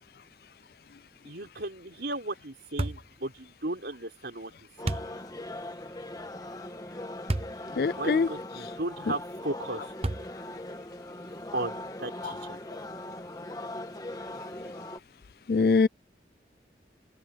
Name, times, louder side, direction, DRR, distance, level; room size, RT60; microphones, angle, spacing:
voice 1, 1.2-4.5 4.8-5.0 8.0-9.9 11.5-12.6, right 2 dB, 70° right, 4.2 m, -35 dB
sound 1, 2.8-3.1 4.8-5.1 7.3-7.6 8.2-8.3 10.0-10.5, right 2 dB, 35° right, 0.8 m, -30 dB
sound 2, 4.8-15.0, left 1 dB, 20° left, 1.4 m, -40 dB
voice 2, 7.8-8.3 15.5-15.9, left 4 dB, 55° left, 0.4 m, -22 dB
open air
head